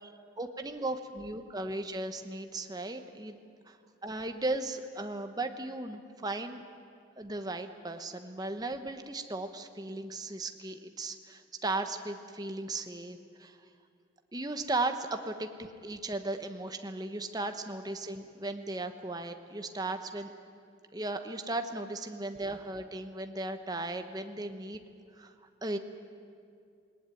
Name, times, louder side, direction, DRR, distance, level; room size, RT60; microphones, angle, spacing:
voice 1, 0.4-3.4 3.7-3.8 4.0-6.6 7.2-13.6 14.3-20.3 20.9-24.8 25.2-25.3 25.6-25.8, right 2 dB, 20° right, 7 dB, 1.0 m, -36 dB
19.0 x 19.0 x 9.2 m, 2.4 s
head